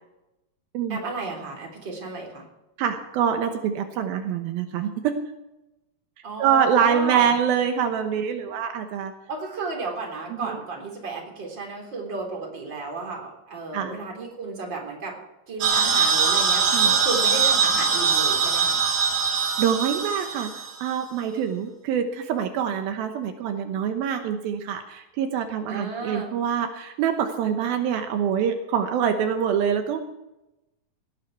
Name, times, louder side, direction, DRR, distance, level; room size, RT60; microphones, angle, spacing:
voice 1, 0.9-2.4 6.2-7.3 9.3-15.2 15.5-18.8 25.7-26.3, right 3 dB, 30° right, 1 dB, 3.9 m, -33 dB
voice 2, 2.8-5.2 6.4-9.1 10.3-10.6 13.7-13.9 16.7-17.0 19.6-20.5 20.8-30.0, right 8 dB, 80° right, 5 dB, 2.9 m, -25 dB
sound 1, 15.6-20.9, right 5 dB, 55° right, 3.5 m, -22 dB
18.0 x 11.5 x 4.7 m, 0.96 s
omnidirectional pair, 4.3 m